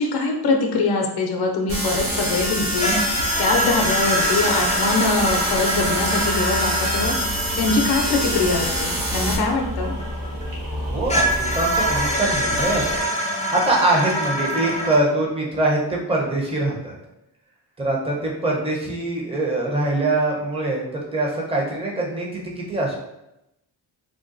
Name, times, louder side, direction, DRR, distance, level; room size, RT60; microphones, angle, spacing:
voice 1, 0.0-7.2 7.6-9.9, left 3 dB, 65° left, 1 dB, 0.6 m, -23 dB
sound 1, 1.7-9.4, right 1 dB, 70° right, 1.0 m, -26 dB
sound 2, 2.1-13.0, equal, 50° right, 1.3 m, -32 dB
sound 3, 2.8-10.5 11.1-15.0, equal, 20° left, 0.4 m, -25 dB
voice 2, 10.9-12.9 13.3-16.9 17.8-23.0, right 2 dB, 15° right, -3 dB, 0.7 m, -23 dB
3.6 x 2.2 x 2.5 m, 0.88 s
cardioid pair, 110°, 42 cm